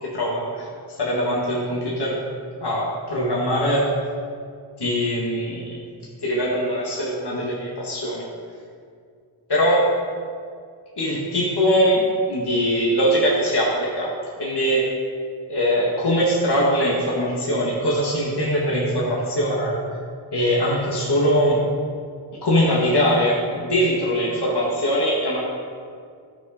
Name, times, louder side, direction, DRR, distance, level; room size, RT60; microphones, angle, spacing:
voice 1, 0.0-2.2 2.6-3.9 4.8-5.8 6.2-8.3 9.5-9.9 11.0-14.1 14.4-14.9 15.5-19.8 20.3-21.6 22.4-25.4, equal, 55° left, -5 dB, 2.1 m, -22 dB
15.5 x 6.2 x 5.1 m, 2.2 s
wide cardioid pair, 95°, 47 cm